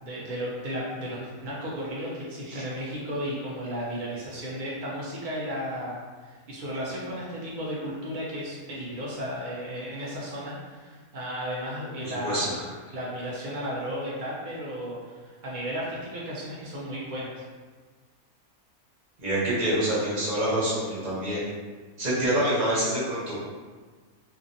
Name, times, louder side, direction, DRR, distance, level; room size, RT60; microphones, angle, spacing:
voice 1, 0.0-12.5 12.9-17.4, equal, 85° right, -6 dB, 0.4 m, -34 dB
voice 2, 12.0-12.5 19.2-21.5 22.0-23.4, right 1 dB, 35° right, -8 dB, 0.9 m, -26 dB
2.8 x 2.6 x 2.6 m, 1.4 s
omnidirectional pair, 1.6 m